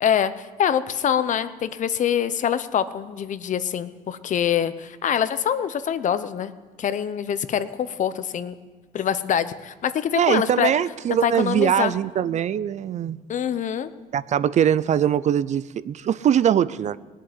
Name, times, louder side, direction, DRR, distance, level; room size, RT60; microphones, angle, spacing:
voice 1, 0.0-6.5 6.8-8.5 8.9-10.7 11.2-11.9 13.3-13.9, left 9 dB, 50° left, 13 dB, 0.8 m, -24 dB
voice 2, 10.2-13.2 14.1-17.0, right 9 dB, 45° right, 17 dB, 0.4 m, -22 dB
19.0 x 7.5 x 9.5 m, 1.4 s
cardioid pair, 110°, 17 cm